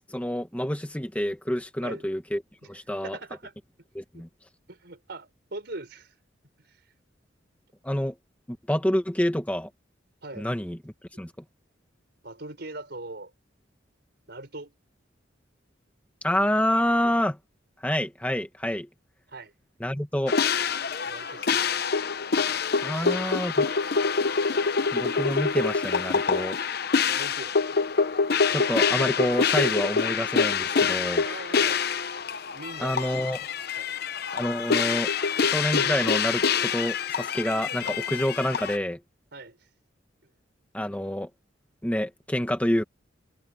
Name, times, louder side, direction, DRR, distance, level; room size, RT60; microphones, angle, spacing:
voice 1, 0.0-2.4 2.7-3.2 3.9-4.3 7.8-8.1 8.7-9.7 10.3-11.3 16.2-17.4 17.8-18.9 19.8-20.3 22.8-23.7 24.9-26.6 28.5-31.2 32.8-33.5 34.3-35.1 35.4-39.0 40.7-41.3 41.8-42.8, equal, 10° left, 1.4 m, -28 dB
voice 2, 3.0-3.5 4.1-4.2 4.7-6.1 10.2-10.5 12.2-13.3 14.3-14.7 19.3-19.5 21.0-21.6 22.9-23.3 27.1-27.8 31.2-31.8 32.5-33.1 33.8-33.9 39.3-39.6, right 2 dB, 60° right, 5.1 m, -41 dB
sound 1, 20.3-38.8, left 5 dB, 55° left, 0.8 m, -26 dB
head